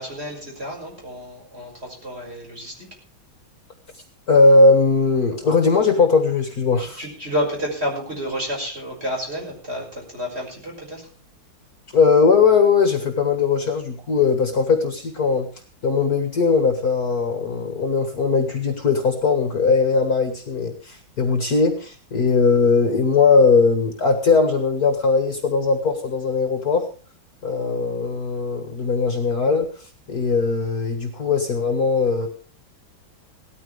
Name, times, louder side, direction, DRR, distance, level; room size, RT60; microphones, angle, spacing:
voice 1, 0.0-2.9 6.8-11.1, equal, 30° right, 0 dB, 6.1 m, -30 dB
voice 2, 4.3-7.0 11.9-15.5 15.8-26.9 27.4-32.3, left 4 dB, 50° left, 6 dB, 2.0 m, -19 dB
18.5 x 13.5 x 3.4 m, 0.38 s
omnidirectional pair, 2.2 m